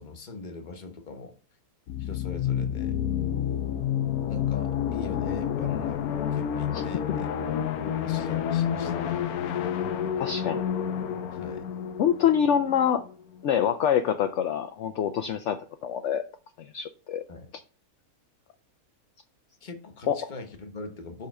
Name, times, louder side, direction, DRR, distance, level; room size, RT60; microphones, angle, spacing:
voice 1, 0.0-1.3 2.0-3.0 4.3-7.3 7.9-9.2 11.3-11.7 17.3-17.5 19.6-21.3, left 3 dB, 35° left, 1.1 m, -42 dB
sound 1, 1.9-13.4, left 9 dB, 80° left, 1.2 m, -29 dB
voice 2, 9.9-10.6 12.0-13.0 13.4-16.2 16.6-17.2 20.1-20.2, left 9 dB, 65° left, 0.8 m, -26 dB
5.5 x 5.0 x 6.4 m
omnidirectional pair, 1.6 m